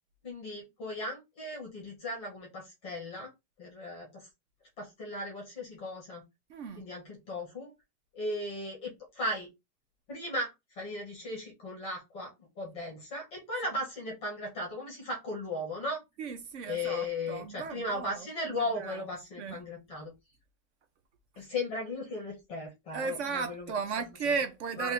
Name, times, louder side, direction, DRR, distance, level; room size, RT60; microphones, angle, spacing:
voice 1, 0.2-3.3 3.6-4.3 4.8-6.2 6.7-7.7 8.1-9.5 10.1-16.0 16.7-20.1 21.4-23.7 24.2-24.3 24.8-24.9, left 1 dB, 15° left, 0.5 m, -37 dB
voice 2, 6.5-6.8 16.2-19.0 19.4-19.6 22.9-24.9, right 5 dB, 50° right, 0.4 m, -35 dB
2.8 x 2.4 x 3.6 m
supercardioid pair, 175°, 49 cm